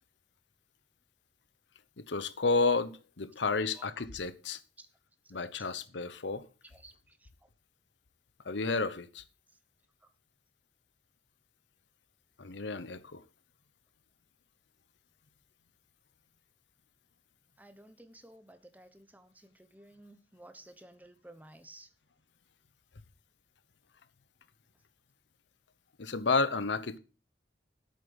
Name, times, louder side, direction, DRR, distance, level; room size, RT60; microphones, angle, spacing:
voice 1, 2.0-4.6 5.3-6.5 8.4-9.2 12.4-13.2 26.0-27.0, left 4 dB, 85° left, 0.9 m, -31 dB
voice 2, 3.6-3.9 4.8-4.9 5.6-5.7 6.7-7.3 17.6-21.9, right 1 dB, 10° right, 1.0 m, -55 dB
8.5 x 7.6 x 8.0 m
head